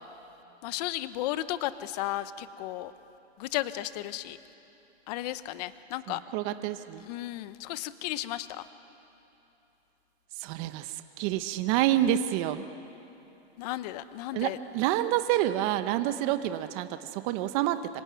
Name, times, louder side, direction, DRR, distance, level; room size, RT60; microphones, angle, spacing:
voice 1, 0.6-2.9 3.4-4.4 5.1-6.2 7.0-8.7 13.6-14.6, left 15 dB, 35° left, 13 dB, 1.0 m, -34 dB
voice 2, 6.1-7.0 10.4-12.6 14.3-17.8, right 13 dB, 30° right, 10 dB, 0.9 m, -28 dB
26.5 x 22.5 x 9.6 m, 3.0 s
hypercardioid pair, 155°, 34 cm